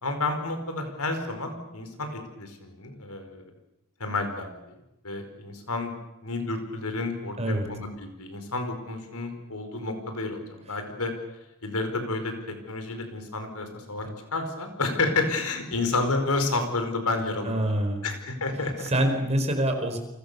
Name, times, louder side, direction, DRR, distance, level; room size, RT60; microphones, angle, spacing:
voice 1, 0.0-3.4 4.0-4.7 5.0-5.9 6.2-11.1 11.6-17.7 18.0-19.1, left 3 dB, 90° left, 6 dB, 5.0 m, -30 dB
voice 2, 17.4-18.1 18.8-20.0, right 1 dB, 30° right, 5 dB, 4.6 m, -26 dB
29.0 x 25.0 x 7.0 m, 0.93 s
head